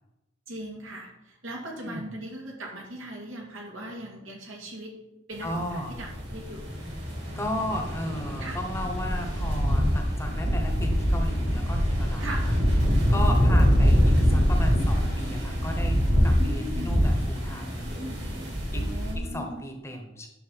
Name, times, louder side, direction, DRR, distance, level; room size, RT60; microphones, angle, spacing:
voice 1, 0.5-4.9 5.3-6.8 8.4-8.6 12.2-12.5 16.4-17.0 18.8-19.6, right 1 dB, 85° right, 0 dB, 2.3 m, -39 dB
voice 2, 5.4-5.9 7.3-12.5 13.1-18.1 18.7-18.9 19.1-20.3, left 1 dB, 15° left, 3 dB, 1.1 m, -35 dB
sound 1, 5.4-19.1, equal, 55° right, 2.9 m, -24 dB
9.9 x 6.5 x 4.2 m, 0.92 s
head